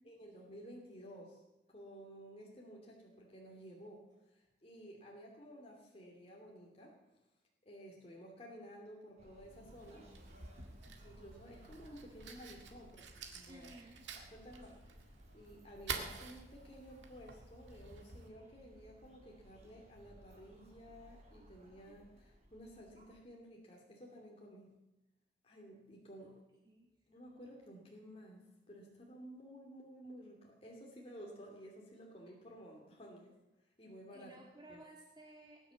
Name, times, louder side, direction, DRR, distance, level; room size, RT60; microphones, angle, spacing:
voice 1, 0.0-1.4 1.7-4.0 4.3-7.0 7.6-10.1 11.0-13.1 13.3-13.7 14.2-15.0 15.3-24.7 25.4-26.4 27.1-33.3 33.8-34.3 34.7-34.8, equal, 35° left, -1 dB, 2.8 m, -54 dB
sound 1, 9.2-23.2, equal, 40° right, 3.9 m, -60 dB
Fire, 9.5-18.3, right 5 dB, 90° right, 2.0 m, -49 dB
voice 2, 13.5-14.0 14.7-14.8 26.2-26.3 26.6-26.9 34.1-35.7, right 1 dB, 25° right, -1 dB, 1.7 m, -57 dB
19.0 x 10.0 x 7.3 m, 1.0 s
head